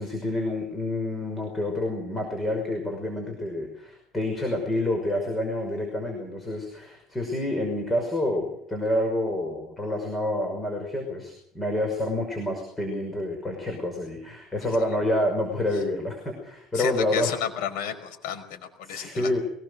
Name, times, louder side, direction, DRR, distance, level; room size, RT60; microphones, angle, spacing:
voice 1, 0.0-17.4 18.8-19.4, left 1 dB, 10° left, 2 dB, 5.7 m, -28 dB
voice 2, 16.7-19.3, left 9 dB, 80° left, 5 dB, 5.0 m, -32 dB
23.0 x 20.0 x 6.6 m, 0.71 s
cardioid pair, 135°, 0 cm